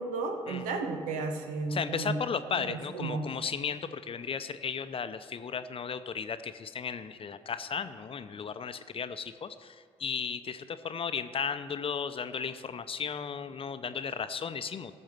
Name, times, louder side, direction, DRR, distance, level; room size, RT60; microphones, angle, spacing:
voice 1, 0.0-2.2 2.7-3.2, right 3 dB, 75° right, 6 dB, 1.1 m, -33 dB
voice 2, 1.7-15.0, left 6 dB, 40° left, 11 dB, 0.7 m, -35 dB
15.0 x 6.3 x 6.0 m, 2.1 s
hypercardioid pair, 45°, 14 cm